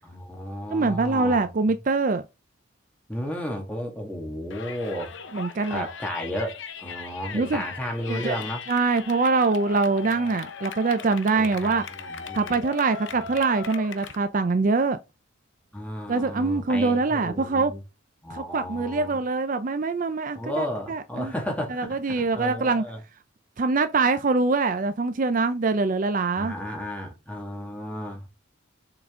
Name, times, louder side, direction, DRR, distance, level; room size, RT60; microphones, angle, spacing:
voice 1, 0.0-1.5 3.1-5.1 5.7-8.6 11.3-12.6 13.1-13.3 15.7-17.8 18.2-19.2 20.4-23.0 26.3-28.3, equal, 5° left, 1.9 m, -33 dB
voice 2, 0.7-2.2 5.3-5.9 7.3-7.6 8.1-8.4 8.7-11.8 12.3-15.0 16.1-17.7 18.3-21.3 21.7-22.9 23.6-26.5, right 3 dB, 40° right, 0.5 m, -24 dB
Yell, 4.5-14.2, left 5 dB, 65° left, 0.8 m, -38 dB
7.0 x 3.8 x 3.7 m
head